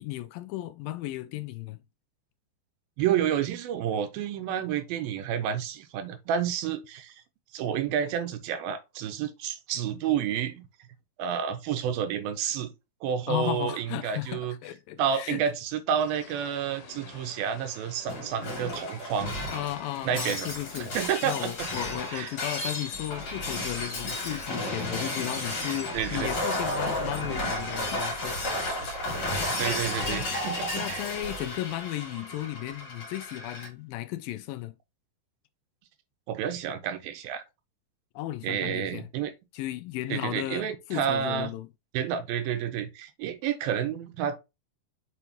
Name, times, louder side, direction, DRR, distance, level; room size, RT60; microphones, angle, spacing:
voice 1, 0.0-1.8 13.3-15.4 19.5-20.9 21.2-28.4 29.0-30.3 30.7-34.8 38.2-39.1 39.5-41.7, left 15 dB, 80° left, 2.2 m, -35 dB
voice 2, 3.0-7.1 7.5-10.7 11.2-12.7 13.0-14.6 15.0-19.3 20.0-21.7 22.1-22.3 25.9-26.3 29.6-31.0 36.3-37.4 38.4-39.3 40.1-41.5 41.9-44.4, right 9 dB, 85° right, 2.6 m, -30 dB
sound 1, 16.0-28.2, left 5 dB, 65° left, 3.0 m, -49 dB
Shatter, 18.1-33.7, left 1 dB, 40° left, 3.0 m, -33 dB
7.1 x 4.6 x 3.0 m
omnidirectional pair, 4.2 m